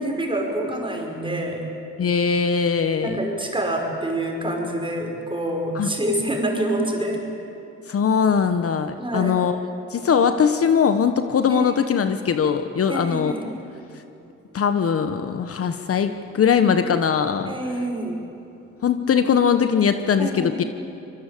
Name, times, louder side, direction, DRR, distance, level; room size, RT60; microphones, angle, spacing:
voice 1, 0.0-1.7 3.0-7.3 9.0-9.3 11.5-12.0 12.9-13.5 17.5-18.2 20.2-20.7, right 1 dB, 15° right, 1 dB, 5.4 m, -27 dB
voice 2, 2.0-3.2 5.7-5.9 7.9-13.3 14.5-17.5 18.8-20.6, left 7 dB, 50° left, 8 dB, 1.2 m, -21 dB
25.0 x 21.5 x 8.5 m, 2.9 s
cardioid pair, 90°, 30 cm